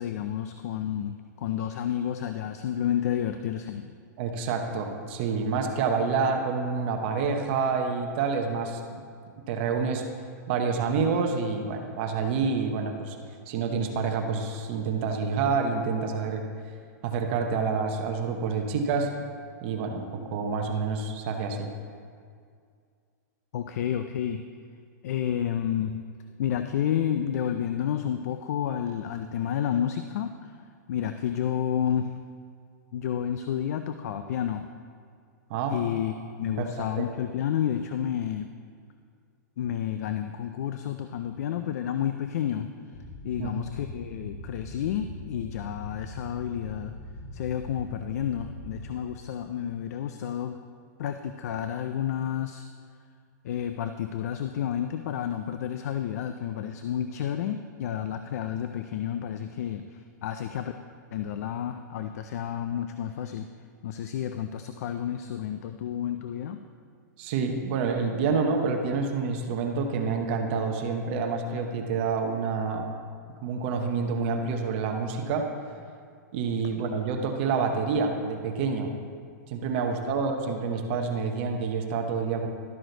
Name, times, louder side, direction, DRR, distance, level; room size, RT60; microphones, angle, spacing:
voice 1, 0.0-3.9 23.5-24.4 25.0-26.0 26.4-30.5 30.9-32.2 32.9-34.7 35.7-38.5 39.6-42.7 43.2-46.9 47.3-50.6 51.0-52.7 53.4-60.7 61.1-63.5 63.8-66.6 79.8-79.9, left 9 dB, 55° left, 8 dB, 0.4 m, -30 dB
voice 2, 4.2-9.0 9.5-10.0 10.5-13.2 13.5-16.5 17.0-19.1 19.6-21.7 35.5-35.8 36.6-37.1 43.4-43.5 67.2-72.9 73.4-75.4 76.3-78.9 79.5-82.5, right 5 dB, 40° right, 4 dB, 0.8 m, -28 dB
sound 1, 42.9-48.9, left 1 dB, 35° left, 1.5 m, -41 dB
12.0 x 6.3 x 3.9 m, 2.2 s
hypercardioid pair, 160°, 10 cm